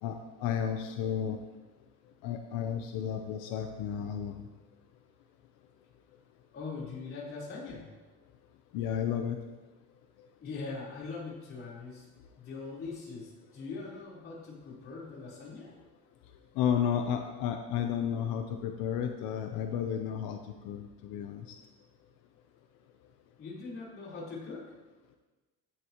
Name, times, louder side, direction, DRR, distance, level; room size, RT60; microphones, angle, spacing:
voice 1, 0.0-1.4 2.2-4.5 8.7-9.4 16.5-20.4 20.6-21.5, left 8 dB, 90° left, 5 dB, 0.9 m, -32 dB
voice 2, 6.5-7.9 10.4-12.1 12.4-15.7 23.4-24.7, left 4 dB, 40° left, -5 dB, 4.2 m, -41 dB
15.5 x 9.9 x 3.1 m, 1.2 s
cardioid pair, 145°, 31 cm